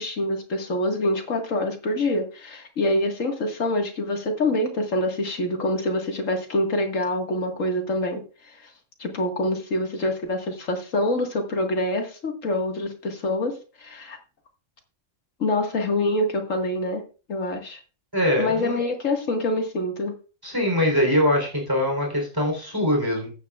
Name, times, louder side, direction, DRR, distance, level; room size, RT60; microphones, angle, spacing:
voice 1, 0.0-8.7 9.0-14.2 15.4-17.0 17.3-17.8 18.4-20.1, left 1 dB, 90° left, 3 dB, 2.2 m, -26 dB
voice 2, 18.1-18.8 20.4-23.3, left 1 dB, 15° right, 1 dB, 3.7 m, -23 dB
14.5 x 9.4 x 2.4 m, 0.35 s
omnidirectional pair, 1.3 m